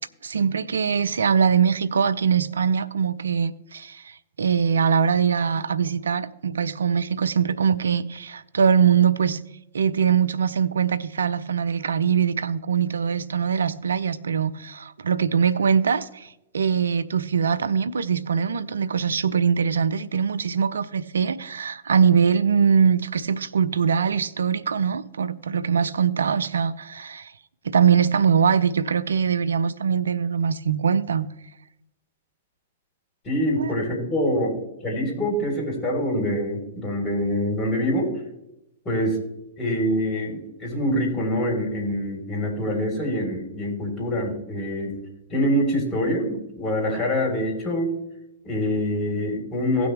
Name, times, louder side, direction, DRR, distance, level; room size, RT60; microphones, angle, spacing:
voice 1, 0.2-9.4 9.7-27.3 27.6-31.3 33.6-33.7, right 7 dB, 80° right, 0.5 m, -22 dB
voice 2, 33.2-38.1 38.9-39.2 39.6-44.9 45.3-47.9 48.4-49.9, equal, 25° left, 4.0 m, -25 dB
17.0 x 6.2 x 3.4 m
hypercardioid pair, 110°, 0 cm